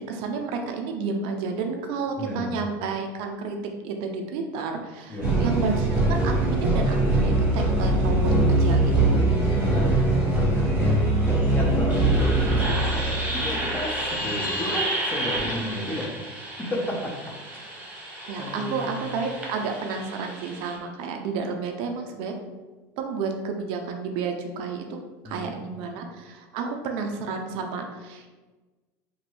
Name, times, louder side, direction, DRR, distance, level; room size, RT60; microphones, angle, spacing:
voice 1, 0.1-3.6 3.8-9.2 18.3-22.3 23.0-24.8 25.2-28.3, right 5 dB, 65° right, 4 dB, 0.4 m, -31 dB
voice 2, 2.2-2.5 5.1-5.4 9.3-16.1 16.6-17.1 17.4-17.8 18.4-19.1 25.2-25.6, left 1 dB, 20° left, -1 dB, 0.7 m, -32 dB
sound 1, 5.2-20.7, right 2 dB, 10° right, 1.1 m, -24 dB
2.9 x 2.6 x 3.0 m, 1.3 s
supercardioid pair, 110°, 10 cm